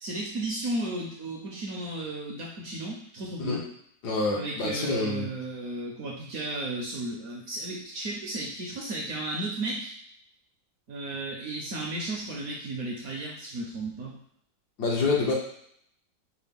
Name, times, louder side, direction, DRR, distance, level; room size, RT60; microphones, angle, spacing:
voice 1, 0.0-3.6 4.3-9.9 10.9-14.2 15.2-15.3, right 2 dB, 60° right, -2 dB, 1.0 m, -34 dB
voice 2, 4.0-5.3 14.8-15.3, left 3 dB, 65° left, -3 dB, 1.4 m, -27 dB
4.9 x 2.1 x 3.5 m, 0.69 s
omnidirectional pair, 2.0 m